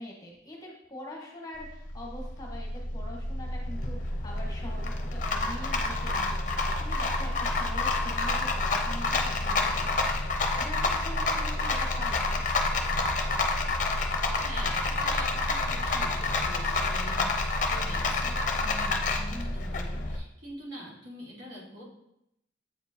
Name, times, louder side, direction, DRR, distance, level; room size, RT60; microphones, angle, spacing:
voice 1, 0.0-12.4, left 1 dB, 20° left, -1 dB, 0.9 m, -44 dB
Rattle, 1.6-20.2, left 2 dB, 40° left, 0.5 m, -28 dB
voice 2, 14.3-21.8, equal, 65° right, -5 dB, 1.8 m, -44 dB
8.0 x 4.4 x 2.8 m, 0.80 s
head